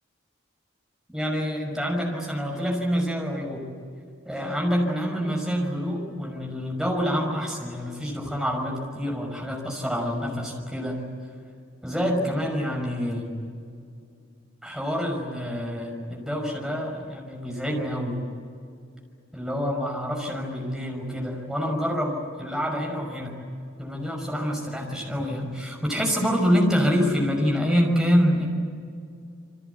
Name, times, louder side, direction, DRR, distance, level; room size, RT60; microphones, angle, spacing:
voice 1, 1.1-3.6 4.3-11.0 11.8-13.3 14.6-18.2 19.3-23.3 23.8-28.5, equal, 5° right, 0 dB, 5.7 m, -26 dB
28.5 x 24.5 x 8.2 m, 2.4 s
head